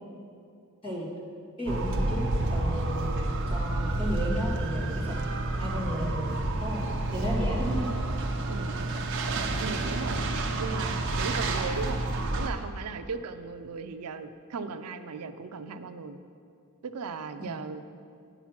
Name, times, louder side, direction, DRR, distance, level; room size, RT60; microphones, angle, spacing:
voice 1, 1.6-2.2 2.5-3.2 3.5-5.3 5.6-6.3 6.6-6.8 7.1-7.9 17.4-17.6, equal, 25° left, -7 dB, 2.5 m, -33 dB
sound 1, 1.7-12.5, right 2 dB, 55° right, 0.8 m, -29 dB
voice 2, 6.8-7.2 8.5-8.9 9.6-10.2 10.6-12.0 12.3-16.2 16.8-17.8, right 5 dB, 85° right, 9 dB, 0.5 m, -37 dB
9.2 x 5.9 x 5.9 m, 2.4 s
head